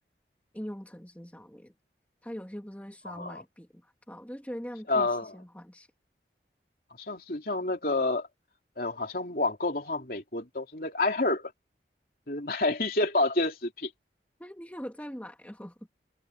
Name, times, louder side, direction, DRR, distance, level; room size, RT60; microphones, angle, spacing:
voice 1, 0.5-1.7 2.2-5.9 14.4-15.8, equal, 10° left, 2.3 m, -42 dB
voice 2, 3.1-3.4 4.9-5.3 7.0-8.3 8.8-11.5 12.3-13.9, left 2 dB, 55° left, 3.4 m, -29 dB
head